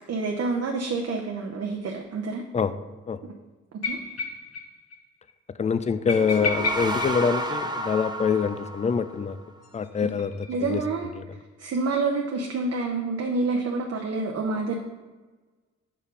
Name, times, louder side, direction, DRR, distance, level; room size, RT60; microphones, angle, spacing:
voice 1, 0.1-2.4 3.8-4.0 10.0-10.1 10.5-11.1 11.6-14.8, right 3 dB, 55° right, 1 dB, 0.7 m, -28 dB
sound 1, 3.8-4.7 4.9-5.0 5.3-5.4 6.1-8.1 9.6-10.9, left 3 dB, 60° left, 0.8 m, -32 dB
voice 2, 5.6-9.4 9.7-10.8 11.2-11.3, left 6 dB, 25° left, 13 dB, 0.3 m, -25 dB
sound 2, 6.0-9.6, right 1 dB, 15° right, 0.7 m, -32 dB
5.3 x 4.5 x 5.0 m, 1.3 s
cardioid pair, 75°, 29 cm